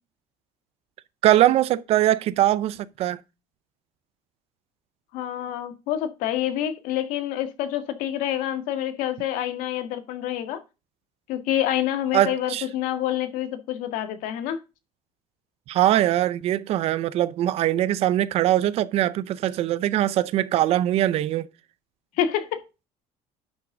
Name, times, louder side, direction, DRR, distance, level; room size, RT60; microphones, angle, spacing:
voice 1, 1.2-3.2 12.1-12.6 15.7-21.5, right 13 dB, 45° right, 0.6 m, -22 dB
voice 2, 5.1-10.6 11.3-14.6 22.2-22.6, left 11 dB, 75° left, 1.7 m, -27 dB
11.0 x 6.2 x 3.8 m
cardioid pair, 175°, 14 cm